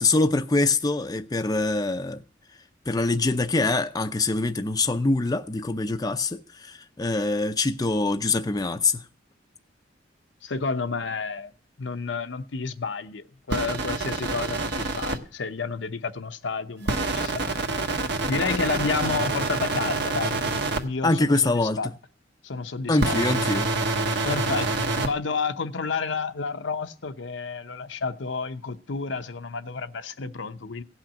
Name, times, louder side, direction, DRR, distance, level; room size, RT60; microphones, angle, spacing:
voice 1, 0.0-2.2 2.9-9.0 21.0-21.8 22.9-23.7, left 3 dB, 20° left, 0.6 m, -24 dB
voice 2, 10.4-11.5 11.8-17.5 18.3-20.4 20.8-21.9 22.4-23.2 24.2-24.7 25.0-30.8, left 4 dB, 75° left, 0.8 m, -30 dB
sound 1, 13.5-15.2 16.9-20.8 23.0-25.1, right 3 dB, 65° right, 1.3 m, -27 dB
16.5 x 5.8 x 8.9 m
head